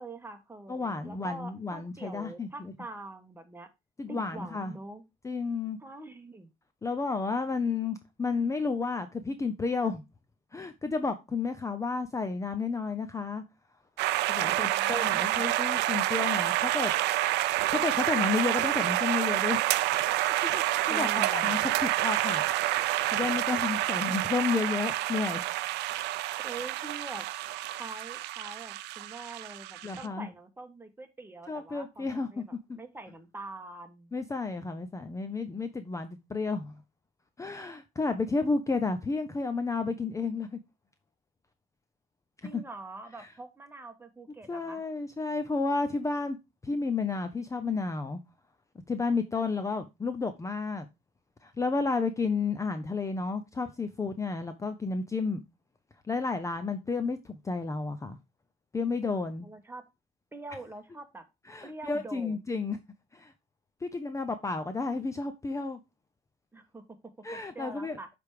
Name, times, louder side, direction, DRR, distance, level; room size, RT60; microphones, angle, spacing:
voice 1, 0.0-3.7 4.1-5.0 5.8-6.5 14.4-15.5 20.9-21.6 26.4-27.3 27.7-34.1 42.4-44.8 59.4-59.8 60.3-61.3 61.6-62.4 66.5-67.0 67.3-68.1, right 2 dB, 15° right, 1.2 m, -44 dB
voice 2, 0.7-2.7 4.0-4.7 5.2-5.8 6.8-10.0 10.5-13.4 14.3-16.9 17.7-19.6 20.1-22.4 23.1-25.4 29.8-30.3 31.5-32.4 32.7-32.8 34.1-36.8 37.4-40.6 42.5-42.6 44.5-46.4 46.6-48.2 48.9-50.9 51.4-55.4 56.1-58.2 58.7-59.5 61.5-62.8 63.1-63.3 63.8-65.8 67.2-68.0, left 4 dB, 20° left, 0.6 m, -31 dB
sound 1, 14.0-30.1, right 16 dB, 85° right, 0.5 m, -28 dB
8.1 x 3.5 x 4.7 m
cardioid pair, 110°, 17 cm